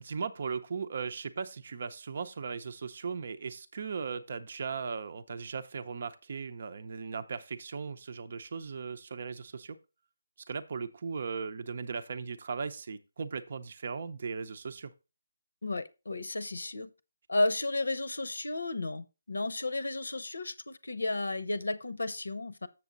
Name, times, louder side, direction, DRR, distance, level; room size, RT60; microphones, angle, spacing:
voice 1, 0.0-9.8 10.5-14.9, right 5 dB, 45° right, 0.6 m, -37 dB
voice 2, 15.6-16.9 17.3-22.7, left 2 dB, 80° left, 0.8 m, -33 dB
7.3 x 6.9 x 3.9 m
figure-of-eight pair, 160°, 0 cm